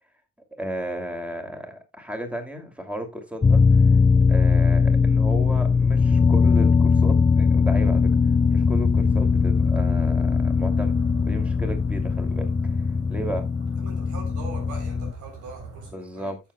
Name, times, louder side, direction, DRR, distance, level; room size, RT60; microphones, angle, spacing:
voice 1, 0.6-3.6 4.3-8.1 8.5-11.0 11.2-12.8 13.1-13.5 15.8-16.4, right 1 dB, 5° right, 2.7 m, -34 dB
sound 1, 3.4-15.1, left 5 dB, 15° left, 0.4 m, -20 dB
sound 2, 5.5-15.9, right 3 dB, 55° right, 3.5 m, -47 dB
voice 2, 13.8-16.4, right 3 dB, 75° right, 3.7 m, -42 dB
14.5 x 7.1 x 2.3 m
cardioid pair, 90°, 30 cm